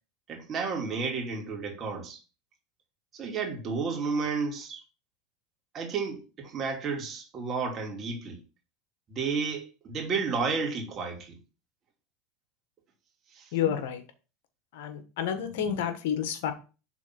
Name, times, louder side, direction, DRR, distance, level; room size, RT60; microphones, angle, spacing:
voice 1, 0.3-2.2 3.1-4.8 5.7-8.4 9.1-11.4 13.3-13.5, right 5 dB, 35° right, 2.6 m, -32 dB
voice 2, 13.5-14.0 14.7-16.5, left 9 dB, 75° left, 1.5 m, -30 dB
6.1 x 4.1 x 6.0 m
supercardioid pair, 110°, 0 cm